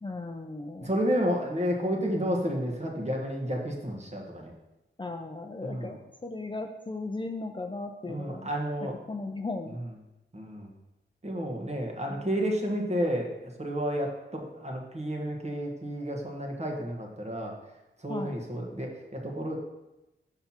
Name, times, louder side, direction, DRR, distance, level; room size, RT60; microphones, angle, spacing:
voice 1, 0.0-1.0 5.0-8.5 9.1-9.8 12.1-12.3 18.1-18.4, left 3 dB, 25° left, 4 dB, 0.5 m, -37 dB
voice 2, 0.8-4.5 5.6-5.9 8.1-8.9 10.3-10.7 11.2-13.3 13.6-17.5 18.0-19.6, equal, 30° right, 0 dB, 1.4 m, -31 dB
5.8 x 5.6 x 4.4 m, 0.98 s
cardioid pair, 55°, 21 cm